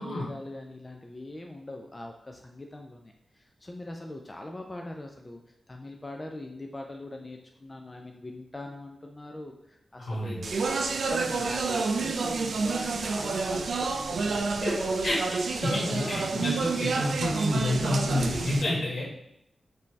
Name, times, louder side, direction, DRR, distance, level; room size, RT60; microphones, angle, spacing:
voice 1, 0.0-5.4 5.7-14.7 15.9-16.2, left 1 dB, 25° left, 2 dB, 0.4 m, -41 dB
voice 2, 10.0-10.5 14.6-15.2 15.5-19.2, left 1 dB, 80° left, -5 dB, 1.6 m, -29 dB
Speech, 10.4-18.6, right 4 dB, 75° right, 0.4 m, -29 dB
5.3 x 2.7 x 3.2 m, 0.79 s
wide cardioid pair, 85°, 0 cm